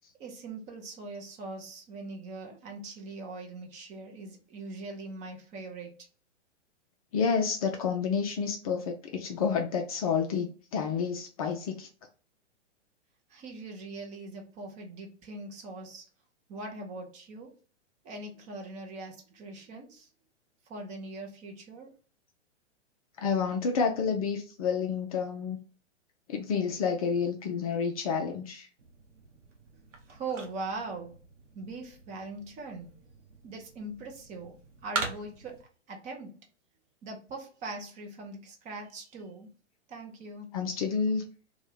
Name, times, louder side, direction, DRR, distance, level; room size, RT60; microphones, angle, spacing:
voice 1, 0.2-6.0 13.3-16.0 16.5-17.5 18.0-20.1 20.7-21.9 30.1-31.1 31.5-32.9 33.4-34.5 34.8-36.3 37.0-39.5 39.9-40.6, right 3 dB, 20° right, 1 dB, 0.6 m, -41 dB
voice 2, 7.1-11.9 23.2-25.6 26.3-28.7 40.5-41.2, left 6 dB, 35° left, 3 dB, 0.4 m, -29 dB
sound 1, 28.8-35.6, right 3 dB, 90° right, 0.8 m, -42 dB
2.7 x 2.3 x 3.2 m, 0.39 s
figure-of-eight pair, 115°, 36 cm